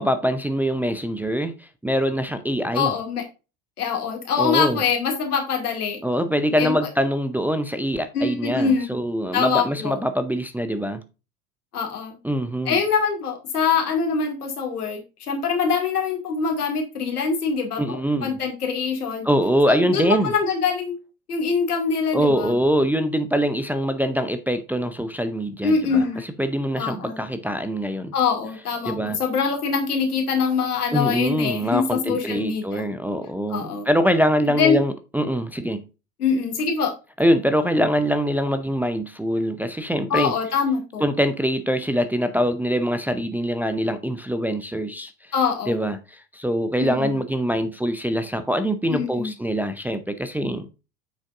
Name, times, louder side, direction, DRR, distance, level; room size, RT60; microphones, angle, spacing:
voice 1, 0.0-2.9 4.4-4.8 6.0-11.0 12.2-12.8 17.8-18.4 19.2-20.3 22.1-28.1 28.8-29.2 30.9-35.8 37.2-40.3 41.0-45.3 45.7-50.7, equal, 5° right, 0.6 m, -23 dB
voice 2, 2.7-3.2 3.8-6.0 6.6-6.7 8.1-8.9 9.3-10.0 11.7-12.2 12.7-19.3 19.7-21.0 21.3-22.5 25.6-26.2 26.8-27.2 28.1-32.9 33.5-33.9 34.6-34.8 36.2-36.9 40.1-41.0 45.3-45.9 46.8-47.1 48.9-49.3, left 5 dB, 80° left, 2.4 m, -24 dB
8.3 x 6.2 x 2.5 m
hypercardioid pair, 80°, 45 cm